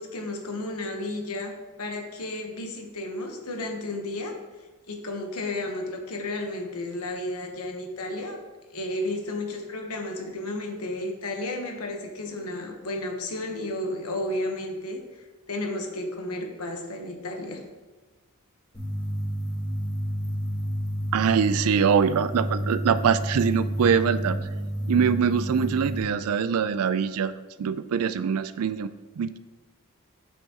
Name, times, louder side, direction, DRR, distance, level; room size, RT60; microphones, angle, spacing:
voice 1, 0.0-4.3 4.9-8.4 8.7-17.6, left 1 dB, 80° left, 3 dB, 1.1 m, -33 dB
sound 1, 18.7-26.0, equal, 20° left, 1.7 m, -30 dB
voice 2, 21.1-24.4 24.9-28.9 29.2-29.4, right 7 dB, 75° right, 13 dB, 0.4 m, -23 dB
8.2 x 5.7 x 2.9 m, 1.2 s
head